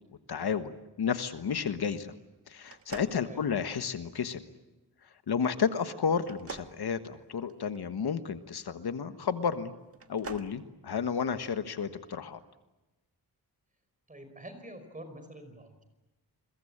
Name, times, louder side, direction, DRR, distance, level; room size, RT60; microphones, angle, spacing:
voice 1, 0.3-2.1 2.5-4.4 5.3-9.7 10.1-12.4, left 6 dB, 70° left, 10 dB, 1.4 m, -32 dB
sound 1, 2.6-4.0 6.2-7.8 9.9-10.5, right 5 dB, 35° right, 1.6 m, -45 dB
voice 2, 3.0-3.4 14.1-15.8, right 1 dB, 20° right, 8 dB, 5.0 m, -47 dB
29.0 x 22.5 x 8.8 m, 1.0 s
wide cardioid pair, 145°, 39 cm